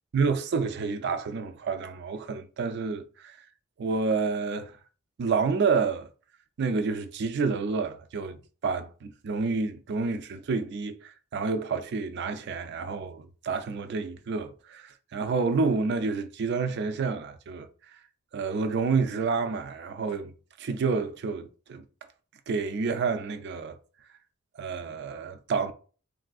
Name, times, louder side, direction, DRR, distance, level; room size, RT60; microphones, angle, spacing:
voice 1, 0.1-3.4 3.8-4.8 5.2-6.1 6.6-8.4 8.6-17.7 18.3-21.8 22.5-23.8 24.6-25.7, right 4 dB, 55° right, 0.4 m, -29 dB
3.3 x 2.5 x 2.3 m
head